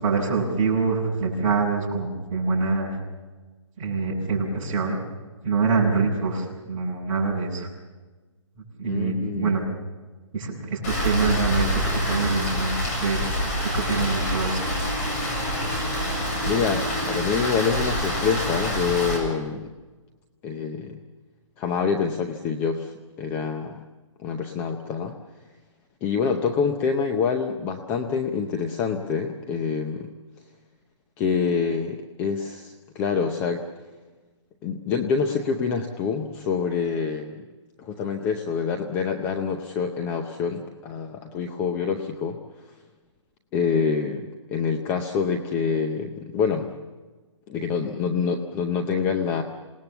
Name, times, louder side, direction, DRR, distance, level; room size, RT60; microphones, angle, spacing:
voice 1, 0.0-2.9 3.8-5.0 5.4-7.7 8.8-9.6 10.3-11.7 12.1-12.7 13.0-13.2 13.7-14.6, right 4 dB, 25° right, -4 dB, 6.9 m, -25 dB
voice 2, 8.8-9.6 16.4-19.7 20.4-21.0 21.6-23.8 24.2-25.1 26.0-30.1 31.2-33.7 34.6-37.3 37.8-42.4 43.5-46.7 47.5-49.4, left 6 dB, 10° left, 6 dB, 0.7 m, -26 dB
Rain, 10.8-19.2, equal, 30° left, 7.1 m, -26 dB
27.5 x 19.0 x 7.1 m, 1.3 s
hypercardioid pair, 165°, 16 cm